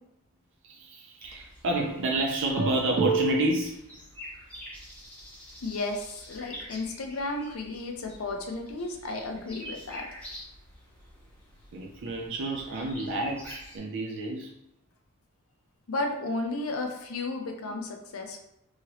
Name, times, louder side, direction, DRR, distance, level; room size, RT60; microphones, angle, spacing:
voice 1, 0.6-3.9 11.7-14.5 17.6-17.7, right 2 dB, 55° right, 0 dB, 0.4 m, -29 dB
sound 1, 1.2-13.8, equal, 5° left, 0.8 m, -47 dB
voice 2, 5.6-10.2 15.9-18.4, left 2 dB, 65° left, 3 dB, 0.5 m, -33 dB
2.9 x 2.8 x 2.8 m, 0.79 s
head